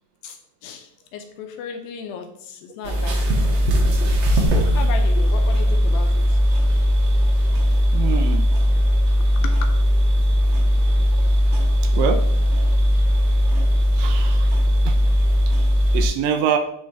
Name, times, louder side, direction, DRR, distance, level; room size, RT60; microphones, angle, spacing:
voice 1, 0.2-3.6 4.3-6.4 9.2-9.7, left 6 dB, 80° left, 5 dB, 2.2 m, -36 dB
sound 1, 2.8-16.1, equal, 70° right, 1.9 m, -18 dB
voice 2, 7.9-8.4 11.9-12.2 14.0-14.5 14.9-15.0 15.9-16.6, right 7 dB, 85° right, 6 dB, 1.9 m, -24 dB
9.4 x 3.2 x 3.4 m, 0.70 s
omnidirectional pair, 4.5 m